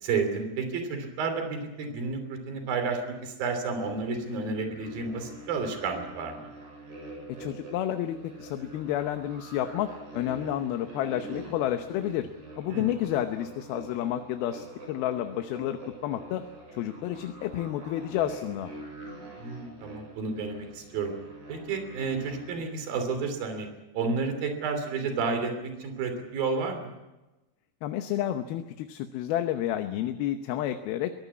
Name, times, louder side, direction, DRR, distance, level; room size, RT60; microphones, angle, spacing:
voice 1, 0.0-6.5 12.7-12.9 19.4-21.1 21.5-23.7 23.9-26.9, right 4 dB, 70° right, 6 dB, 4.8 m, -31 dB
sound 1, 3.8-22.5, right 1 dB, 55° right, 9.6 m, -45 dB
voice 2, 7.4-12.3 12.6-16.4 16.7-18.7 27.8-31.1, left 12 dB, 80° left, 7 dB, 2.8 m, -30 dB
23.5 x 17.5 x 8.4 m, 1.1 s
omnidirectional pair, 4.3 m